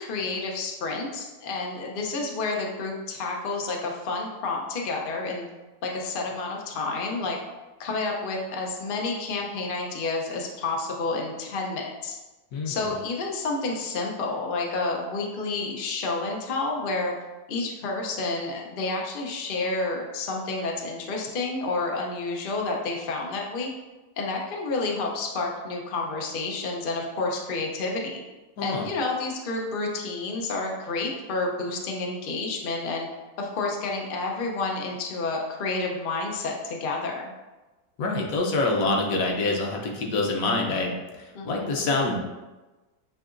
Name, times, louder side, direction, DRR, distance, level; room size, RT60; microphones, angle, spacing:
voice 1, 0.0-5.5 5.8-7.4 7.8-12.2 12.7-17.1 17.5-23.7 24.2-28.2 28.6-33.1 33.4-37.3 41.3-41.9, left 3 dB, 85° left, 0 dB, 0.4 m, -30 dB
voice 2, 12.5-12.9 28.6-28.9 38.0-41.0 41.4-42.2, left 2 dB, 65° left, 1 dB, 1.0 m, -26 dB
7.5 x 2.8 x 2.5 m, 1.1 s
omnidirectional pair, 1.8 m